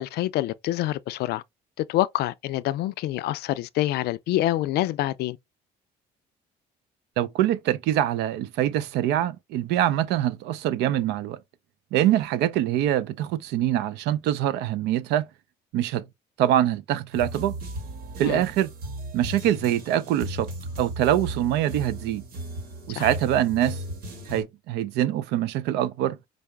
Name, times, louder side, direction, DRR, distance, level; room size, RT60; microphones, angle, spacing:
voice 1, 0.0-1.4 1.8-5.4 18.2-18.4 23.0-23.1, left 15 dB, 75° left, 0.4 m, -26 dB
voice 2, 7.2-11.4 11.9-15.3 15.7-16.0 16.4-17.6 18.2-18.7 19.1-20.5 20.8-22.2 22.9-23.8 24.3-26.2, right 12 dB, 85° right, 0.5 m, -24 dB
sound 1, 17.1-24.4, right 1 dB, 60° right, 1.6 m, -36 dB
4.6 x 2.0 x 3.3 m
cardioid pair, 110°, 17 cm